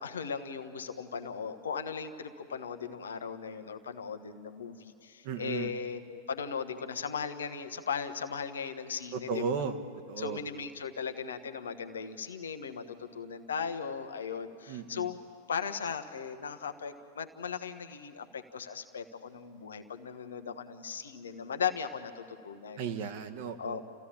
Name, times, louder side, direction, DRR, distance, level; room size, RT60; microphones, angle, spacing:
voice 1, 0.0-9.4 10.2-15.2 15.5-22.8 23.6-23.8, left 6 dB, 70° left, 7 dB, 1.2 m, -37 dB
voice 2, 5.2-5.7 9.1-9.8 10.1-10.4 14.7-15.1 22.8-23.8, right 6 dB, 50° right, 7 dB, 1.4 m, -35 dB
29.5 x 15.5 x 8.7 m, 2.5 s
figure-of-eight pair, 90°, 0 cm